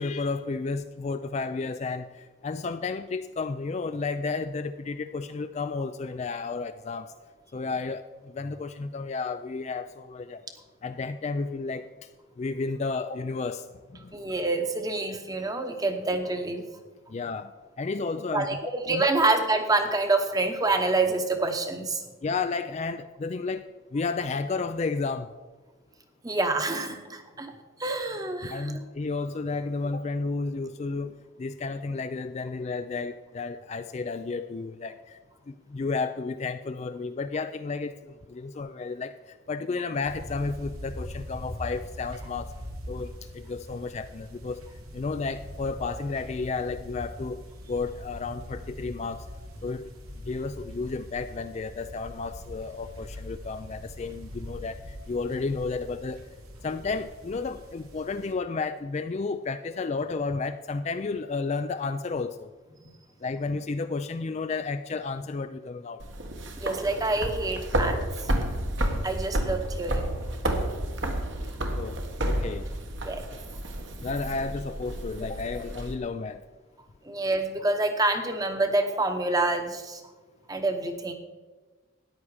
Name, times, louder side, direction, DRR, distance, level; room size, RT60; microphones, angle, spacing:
voice 1, 0.0-2.1 2.4-7.1 7.5-10.4 10.8-11.9 12.4-13.6 14.0-14.1 17.1-17.5 17.8-19.1 22.2-25.3 28.5-35.2 35.5-42.5 42.9-44.6 44.9-47.4 47.7-49.2 49.6-49.9 50.3-54.8 55.1-56.2 56.6-62.5 63.2-66.0 71.7-72.0 72.3-72.7 74.0-76.4, left 4 dB, 30° left, 10 dB, 0.3 m, -32 dB
voice 2, 14.1-16.6 18.3-18.6 18.9-22.0 26.2-27.5 27.8-28.8 66.6-68.3 69.0-70.0 73.0-73.2 77.0-80.0 80.5-81.1, right 2 dB, 15° right, 6 dB, 1.0 m, -27 dB
sound 1, 40.0-58.3, equal, 90° right, 2.1 m, -42 dB
sound 2, 66.0-75.9, right 1 dB, 60° right, 1.4 m, -31 dB
13.5 x 9.9 x 4.9 m, 1.3 s
head